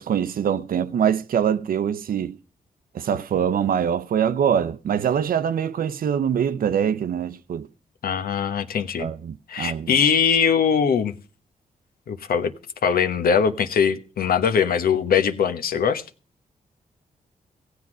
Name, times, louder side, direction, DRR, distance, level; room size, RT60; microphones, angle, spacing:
voice 1, 0.0-2.4 2.9-7.7 9.0-10.0, right 8 dB, 70° right, 0.7 m, -24 dB
voice 2, 8.0-9.1 9.5-11.1 12.1-12.5 12.8-16.0, left 7 dB, 75° left, 1.1 m, -21 dB
16.0 x 8.1 x 6.0 m
cardioid pair, 70°, 15 cm